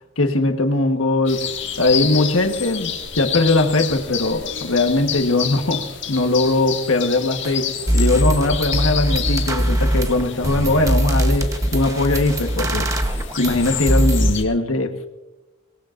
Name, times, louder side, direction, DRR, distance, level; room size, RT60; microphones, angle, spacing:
voice 1, 0.2-1.5 1.8-2.9 3.2-5.8 6.1-15.1, left 2 dB, 90° left, 5 dB, 1.3 m, -20 dB
sound 1, 1.3-14.4, left 8 dB, 65° left, 1.9 m, -30 dB
sound 2, 7.4-7.5 7.9-14.3, equal, 15° right, 0.9 m, -21 dB
23.0 x 18.5 x 2.5 m, 1.1 s
head